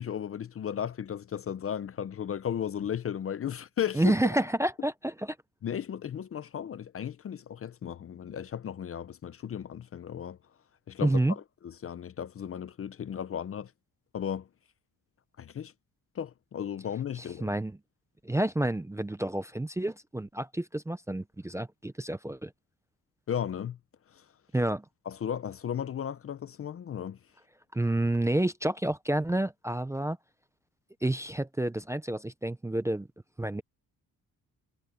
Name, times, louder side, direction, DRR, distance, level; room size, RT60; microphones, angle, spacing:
voice 1, 0.0-4.1 5.6-10.4 10.9-13.7 14.1-14.5 15.4-15.7 16.2-17.5 23.3-23.8 24.1-24.2 25.1-27.2, left 9 dB, 40° left, 0.5 m, -35 dB
voice 2, 3.9-5.4 11.0-11.4 17.2-17.8 18.2-22.5 24.5-24.8 27.7-30.2 31.0-33.1 33.4-33.6, right 1 dB, 10° right, 0.5 m, -29 dB
wide cardioid pair, 160°, 36 cm